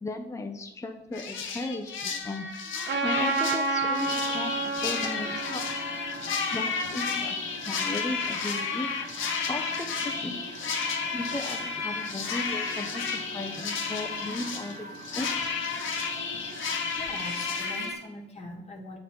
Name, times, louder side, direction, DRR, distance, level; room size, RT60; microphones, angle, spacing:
voice 1, 0.0-2.7 3.0-5.6 6.5-7.4 7.6-8.9 9.5-10.4 11.1-14.9 15.1-15.5, left 2 dB, 15° left, 4 dB, 0.6 m, -36 dB
sound 1, 1.1-17.9, left 5 dB, 80° left, 1.0 m, -32 dB
Trumpet, 2.9-7.5, right 3 dB, 65° right, 1.0 m, -31 dB
Engine, 3.9-18.0, right 3 dB, 35° right, 1.3 m, -45 dB
voice 2, 17.0-19.0, left 1 dB, 35° left, 1 dB, 1.4 m, -42 dB
7.0 x 3.9 x 4.3 m, 0.97 s
cardioid pair, 90°, 20 cm